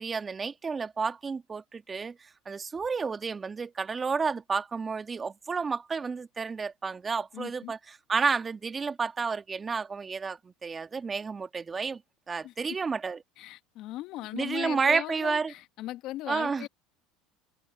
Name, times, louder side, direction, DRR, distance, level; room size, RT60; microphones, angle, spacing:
voice 1, 0.0-7.8 8.1-12.0 12.3-13.2 14.3-15.5 16.3-16.7, right 5 dB, 25° right, 1.7 m, -31 dB
voice 2, 7.3-7.7 12.4-12.5 13.4-16.7, left 15 dB, 60° left, 1.3 m, -38 dB
hypercardioid pair, 90°, 0 cm